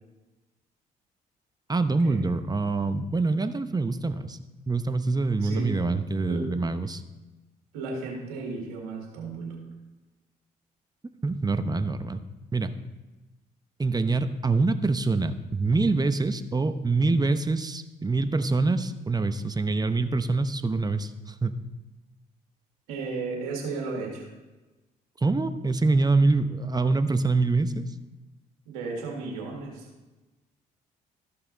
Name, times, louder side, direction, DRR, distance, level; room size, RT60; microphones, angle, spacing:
voice 1, 1.7-4.4 4.7-7.0 11.2-12.2 12.5-12.7 13.8-21.1 21.4-21.6 25.2-27.8, right 3 dB, 20° right, 10 dB, 0.8 m, -25 dB
voice 2, 5.4-5.8 6.2-6.6 7.7-9.7 22.9-24.3 28.7-29.9, right 3 dB, 90° right, -1 dB, 2.1 m, -34 dB
13.5 x 5.6 x 4.1 m, 1.1 s
hypercardioid pair, 55°, 19 cm